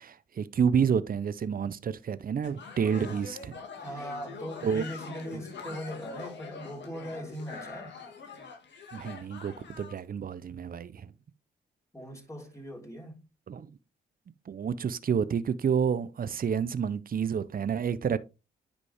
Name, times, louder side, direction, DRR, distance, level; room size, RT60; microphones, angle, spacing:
voice 1, 0.0-3.6 4.6-4.8 8.9-11.1 13.5-13.7 14.5-18.2, right 7 dB, 45° right, 0.7 m, -29 dB
sound 1, 2.4-10.0, left 5 dB, 65° left, 2.3 m, -44 dB
voice 2, 3.7-8.0 11.9-13.2, equal, 15° left, 4.0 m, -40 dB
9.8 x 5.1 x 3.5 m
hypercardioid pair, 45°, 20 cm